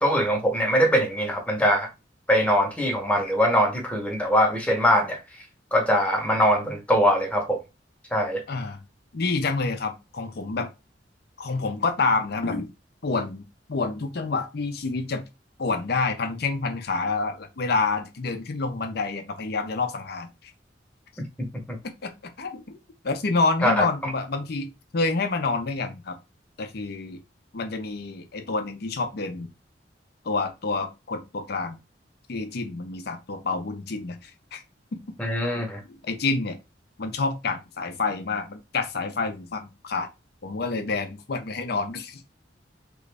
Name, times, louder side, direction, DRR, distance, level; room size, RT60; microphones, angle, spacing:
voice 1, 0.0-1.9 2.3-5.2 5.7-7.6 8.1-8.4 23.6-23.8 35.2-35.8, equal, 10° left, 0.8 m, -22 dB
voice 2, 8.5-8.8 9.1-10.7 11.4-12.7 13.0-13.4 13.7-15.2 15.6-20.5 21.8-22.1 22.4-22.8 23.0-26.2 26.6-27.2 27.5-29.5 30.2-31.8 32.3-34.6 34.9-35.0 35.8-36.6 37.0-40.1 40.4-42.2, left 3 dB, 60° left, 0.6 m, -28 dB
3.1 x 2.5 x 3.3 m
head